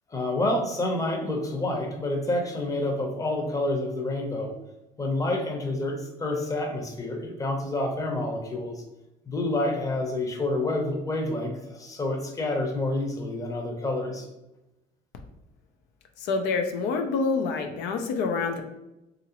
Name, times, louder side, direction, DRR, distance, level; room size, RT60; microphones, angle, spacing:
voice 1, 0.1-4.5 5.0-8.8 9.3-14.3, left 2 dB, 20° left, 2 dB, 0.6 m, -28 dB
voice 2, 16.2-18.6, left 4 dB, 90° left, 4 dB, 0.4 m, -27 dB
2.9 x 2.5 x 2.8 m, 0.93 s
cardioid pair, 110°, 17 cm